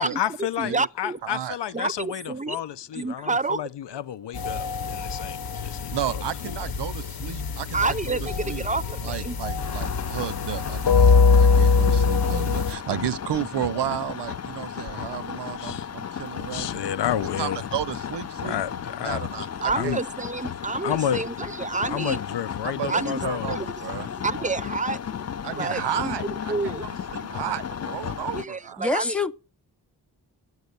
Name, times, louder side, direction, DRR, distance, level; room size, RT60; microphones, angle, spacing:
voice 1, 0.0-6.6 15.6-15.9 16.5-17.7 18.4-19.5 19.7-20.0 20.8-21.2 21.9-23.6, left 10 dB, 85° left, 0.6 m, -31 dB
voice 2, 0.6-1.2 1.7-2.6 2.9-3.6 7.7-9.4 19.6-22.2 22.9-23.2 23.5-23.7 24.2-25.0 25.6-26.2 26.5-26.8 28.3-29.2, right 3 dB, 20° right, 0.5 m, -28 dB
voice 3, 1.2-1.6 5.9-8.6 9.0-16.8 17.4-18.6 19.0-20.0 22.6-24.1 24.4-24.5 25.4-28.8, right 11 dB, 85° right, 0.6 m, -33 dB
sound 1, 4.3-12.7, left 4 dB, 60° left, 0.9 m, -23 dB
sound 2, 9.6-28.4, left 8 dB, 40° left, 0.5 m, -34 dB
voice 4, 28.8-29.3, left 3 dB, 5° left, 0.8 m, -25 dB
9.4 x 8.3 x 6.7 m
cardioid pair, 60°, 41 cm